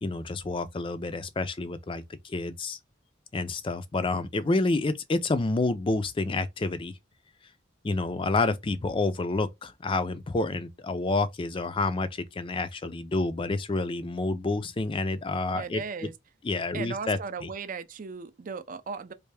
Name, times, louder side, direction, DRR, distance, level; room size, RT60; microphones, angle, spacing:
voice 1, 0.0-2.8 3.3-6.9 7.8-16.1 16.4-17.5, left 2 dB, 25° left, 0.4 m, -29 dB
voice 2, 15.5-16.1 16.7-19.1, right 5 dB, 45° right, 0.4 m, -37 dB
3.3 x 2.5 x 3.3 m
head